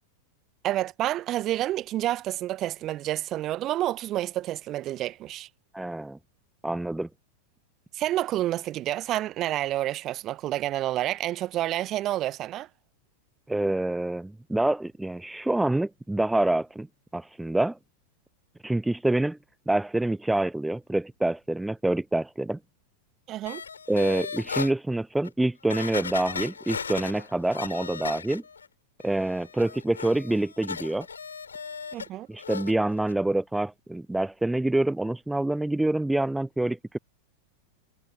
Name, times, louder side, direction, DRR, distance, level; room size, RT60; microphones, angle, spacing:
voice 1, 0.6-5.5 7.9-12.7 23.3-23.6 31.9-32.3, right 14 dB, 35° right, 1.2 m, -29 dB
voice 2, 5.7-6.2 6.6-7.1 13.5-16.9 17.1-17.8 18.6-19.4 19.7-22.6 23.9-28.4 29.0-31.1 32.3-37.0, right 1 dB, 5° right, 0.5 m, -26 dB
sound 1, 23.5-24.7 25.2-25.3 25.7-28.7 29.0-32.1 32.4-32.7 33.1-33.2, left 6 dB, 70° left, 5.7 m, -36 dB
figure-of-eight pair, 90°, 0 cm